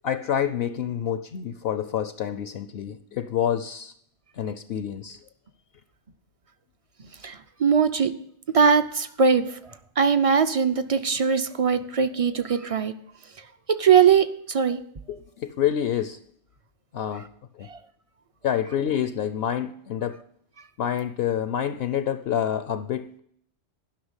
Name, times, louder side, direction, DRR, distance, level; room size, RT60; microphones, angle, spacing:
voice 1, 0.0-3.9 4.4-5.2 15.1-16.2 16.9-17.3 17.5-17.7 18.4-20.2 20.8-23.2, left 9 dB, 65° left, 11 dB, 0.8 m, -27 dB
voice 2, 7.2-8.2 8.5-9.6 10.0-12.9 13.7-14.8 17.7-17.8, right 6 dB, 40° right, 11 dB, 0.5 m, -21 dB
11.5 x 5.9 x 8.0 m, 0.68 s
omnidirectional pair, 1.2 m